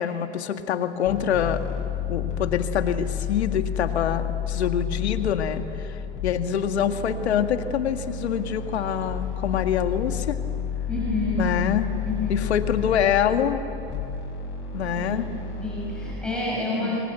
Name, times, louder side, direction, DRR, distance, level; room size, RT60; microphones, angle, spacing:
voice 1, 0.0-1.6 2.1-6.0 6.2-10.4 11.4-11.9 12.3-13.6 14.7-15.3 16.8-17.0, left 9 dB, 90° left, 7 dB, 1.9 m, -25 dB
sound 1, 1.0-16.1, left 7 dB, 35° left, 6.9 m, -31 dB
voice 2, 10.9-11.5 12.1-12.5 14.9-15.2 15.6-17.0, left 2 dB, 5° left, -7 dB, 6.6 m, -28 dB
29.0 x 23.5 x 8.2 m, 2.9 s
hypercardioid pair, 130°, 32 cm